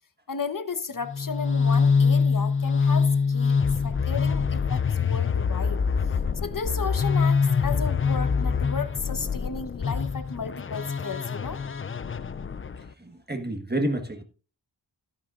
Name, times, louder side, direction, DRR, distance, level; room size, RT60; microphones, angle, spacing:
voice 1, 0.3-11.6, left 5 dB, 45° left, 1.1 m, -34 dB
sound 1, 1.0-12.9, left 5 dB, 30° left, 0.4 m, -24 dB
voice 2, 13.0-14.2, right 1 dB, 20° right, 1.4 m, -29 dB
12.5 x 11.0 x 2.5 m
wide cardioid pair, 75°, 45 cm